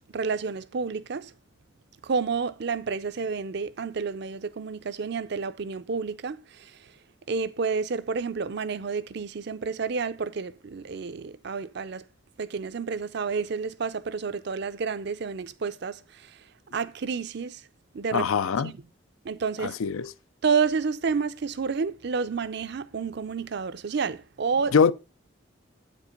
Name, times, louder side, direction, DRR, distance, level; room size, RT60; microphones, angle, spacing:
voice 1, 0.1-1.3 2.0-6.8 7.3-12.0 12.4-16.4 16.7-17.6 17.9-18.3 18.6-18.7 19.2-19.8 20.4-24.7, right 5 dB, 55° right, 0.5 m, -30 dB
voice 2, 18.1-18.7 19.6-20.1 24.7-24.9, left 6 dB, 80° left, 0.4 m, -23 dB
8.1 x 5.3 x 5.1 m
head